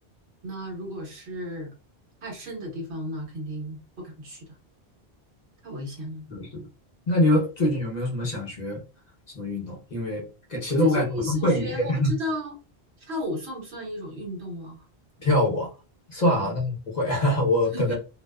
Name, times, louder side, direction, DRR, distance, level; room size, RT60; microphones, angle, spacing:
voice 1, 0.4-1.7 2.2-4.6 5.6-6.3 10.7-12.5 13.0-14.9 16.2-16.5 17.7-17.9, left 1 dB, 85° right, 0 dB, 1.3 m, -34 dB
voice 2, 6.3-6.6 7.1-8.8 9.3-12.1 15.2-15.7 16.1-17.9, left 1 dB, 45° left, -1 dB, 0.8 m, -24 dB
2.7 x 2.1 x 2.2 m, 0.32 s
omnidirectional pair, 1.1 m